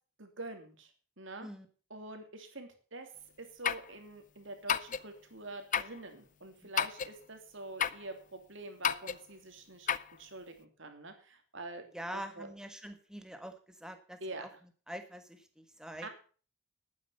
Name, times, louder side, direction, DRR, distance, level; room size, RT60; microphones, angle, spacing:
voice 1, 0.2-0.9 1.2-1.5 1.9-3.1 3.4-11.9 12.1-12.5 14.2-14.5 16.0-16.1, right 2 dB, 60° right, 6 dB, 2.8 m, -46 dB
sound 1, 3.6-3.9 4.7-5.1 5.7-6.0 6.8-7.1 7.8-8.1 8.8-9.2 9.9-10.1, left 8 dB, 35° left, 0.5 m, -31 dB
voice 2, 11.9-14.5 14.9-16.1, equal, 5° right, 8 dB, 1.5 m, -45 dB
12.0 x 9.4 x 6.8 m, 0.40 s
head